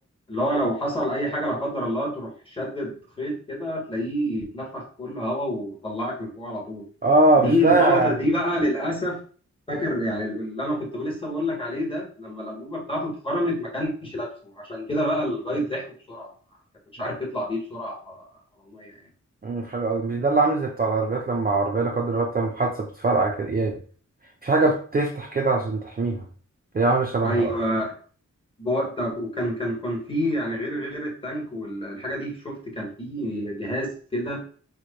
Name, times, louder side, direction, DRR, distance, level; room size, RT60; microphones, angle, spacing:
voice 1, 0.3-6.8 7.4-9.2 9.7-16.3 17.0-18.3 18.6-18.9 27.2-27.9 28.6-34.4, equal, 15° left, 0 dB, 1.2 m, -28 dB
voice 2, 7.0-8.2 19.4-23.8 24.4-26.2 26.7-27.5, right 3 dB, 30° right, 1 dB, 0.4 m, -22 dB
3.1 x 2.1 x 3.9 m, 0.43 s
wide cardioid pair, 90°, 30 cm